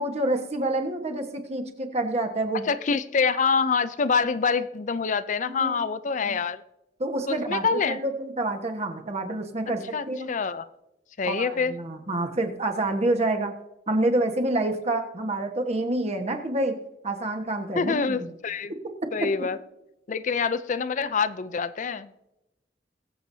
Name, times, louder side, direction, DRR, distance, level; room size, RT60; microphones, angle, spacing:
voice 1, 0.0-2.6 5.5-5.7 6.2-6.4 7.0-10.3 11.2-13.5 13.9-16.8 17.0-18.3 19.2-19.3, right 2 dB, 40° right, 5 dB, 1.4 m, -28 dB
voice 2, 2.7-6.6 7.3-8.0 9.9-10.7 11.2-11.7 17.8-18.7 19.1-19.6 20.1-22.3, left 5 dB, 45° left, 14 dB, 0.5 m, -26 dB
21.5 x 7.9 x 2.7 m, 0.91 s
head